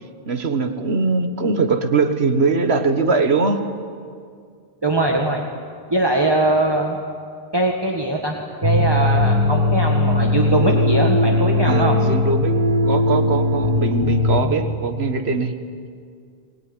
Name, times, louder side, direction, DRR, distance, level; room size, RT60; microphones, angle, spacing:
voice 1, 0.3-3.6 11.6-12.6 12.8-15.5, right 4 dB, 80° right, 7 dB, 1.8 m, -21 dB
voice 2, 4.8-5.4 5.9-7.0 7.5-12.0, right 2 dB, 25° right, 0 dB, 1.8 m, -21 dB
sound 1, 8.6-14.4, left 2 dB, 40° right, 3.5 m, -19 dB
22.0 x 21.0 x 9.9 m, 2.2 s
omnidirectional pair, 1.1 m